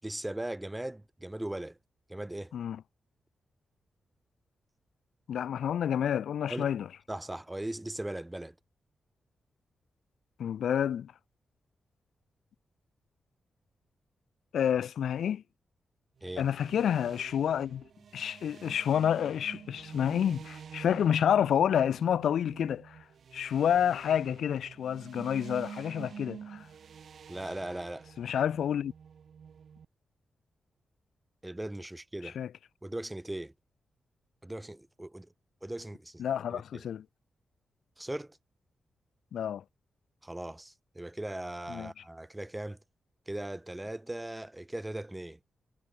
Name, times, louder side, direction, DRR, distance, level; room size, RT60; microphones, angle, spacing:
voice 1, 0.0-1.8 2.1-2.5 6.5-6.7 7.1-8.5 16.2-16.5 27.3-28.1 31.4-32.4 32.8-33.5 34.4-35.3 35.6-36.2 36.5-36.9 38.0-38.4 40.2-42.8 43.3-45.4, right 1 dB, 10° right, 5.1 m, -39 dB
voice 2, 5.3-6.8 10.4-11.1 14.5-15.4 16.4-17.8 18.1-23.0 23.3-26.7 28.2-28.9 32.4-32.5 36.2-37.0 39.3-39.6 41.7-41.9, left 9 dB, 85° left, 4.0 m, -29 dB
sound 1, 16.2-29.9, right 7 dB, 65° right, 7.6 m, -48 dB
cardioid pair, 85°, 0 cm